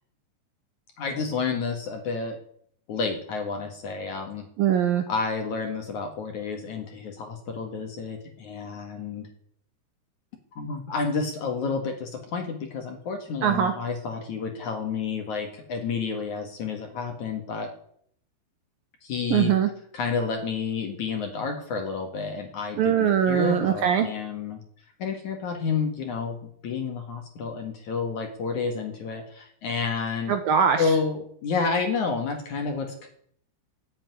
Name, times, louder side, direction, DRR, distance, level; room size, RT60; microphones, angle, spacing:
voice 1, 1.0-2.4 2.9-4.4 5.1-9.3 10.6-17.7 19.0-19.5 19.9-24.6 25.0-26.4 26.6-30.4 30.8-33.1, left 5 dB, 55° left, 4 dB, 2.6 m, -30 dB
voice 2, 4.6-5.0 13.4-13.7 19.3-19.7 22.8-24.1 30.3-30.8, right 8 dB, 70° right, 7 dB, 2.3 m, -21 dB
14.5 x 8.2 x 9.4 m, 0.64 s
omnidirectional pair, 5.1 m